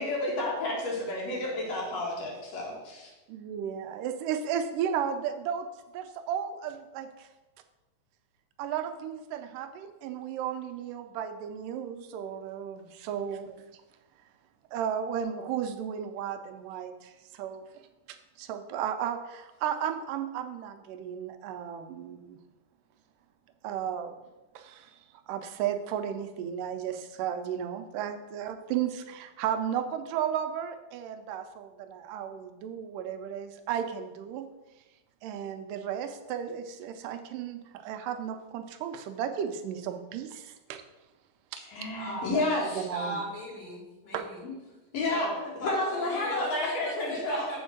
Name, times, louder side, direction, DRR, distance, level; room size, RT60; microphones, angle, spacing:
voice 1, 0.0-3.1 41.7-42.9 44.4-44.5 44.9-47.5, left 2 dB, 55° left, -2 dB, 2.8 m, -31 dB
voice 2, 3.3-5.7 5.9-7.3 8.6-13.7 14.7-17.8 18.1-22.4 23.6-24.1 24.6-25.0 25.3-34.5 35.2-40.8 41.5-41.9 42.3-42.4 42.7-43.2 44.1-44.3, right 9 dB, 85° right, 7 dB, 2.3 m, -34 dB
voice 3, 41.9-42.3 42.9-44.4 45.0-47.6, equal, 80° left, -5 dB, 4.5 m, -36 dB
7.0 x 4.4 x 6.4 m, 1.1 s
omnidirectional pair, 3.8 m